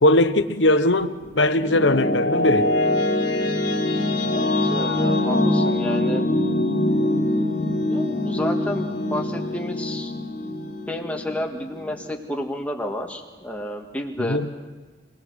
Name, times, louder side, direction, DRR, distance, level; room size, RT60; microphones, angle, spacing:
voice 1, 0.0-2.7 14.2-14.5, left 1 dB, 80° left, 1.1 m, -20 dB
sound 1, 1.1-12.0, left 1 dB, 55° left, 3.3 m, -23 dB
voice 2, 4.3-6.3 7.9-10.1 10.9-14.4, left 1 dB, 5° left, 1.9 m, -31 dB
26.0 x 19.5 x 6.4 m
head